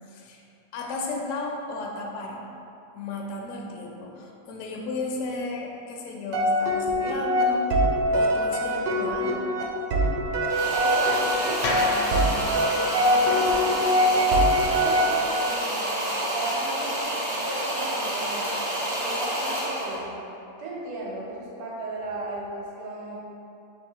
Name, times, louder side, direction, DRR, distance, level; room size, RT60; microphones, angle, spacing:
voice 1, 0.1-0.4 0.7-2.4 2.9-7.8 8.1-10.0, left 2 dB, 70° left, -1 dB, 0.7 m, -34 dB
sound 1, 6.3-15.6, equal, 85° right, 1.2 m, -23 dB
sound 2, 10.5-20.1, right 1 dB, 45° right, 0.6 m, -29 dB
voice 2, 10.7-12.5 13.0-15.9 16.3-18.6 19.0-20.3 20.6-23.2, right 2 dB, 65° right, -4 dB, 1.2 m, -35 dB
sound 3, 11.6-15.8, left 2 dB, 90° left, 1.2 m, -35 dB
3.1 x 3.0 x 4.5 m, 2.7 s
omnidirectional pair, 1.8 m